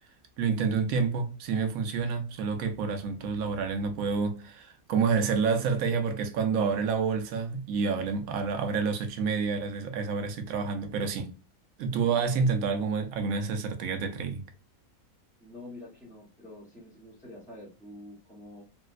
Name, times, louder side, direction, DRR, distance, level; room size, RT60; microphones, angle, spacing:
voice 1, 0.4-11.3 11.8-14.4, right 5 dB, 75° right, 1.0 m, -28 dB
voice 2, 15.4-18.6, left 1 dB, ahead, 0.7 m, -47 dB
3.9 x 2.1 x 2.4 m
omnidirectional pair, 1.5 m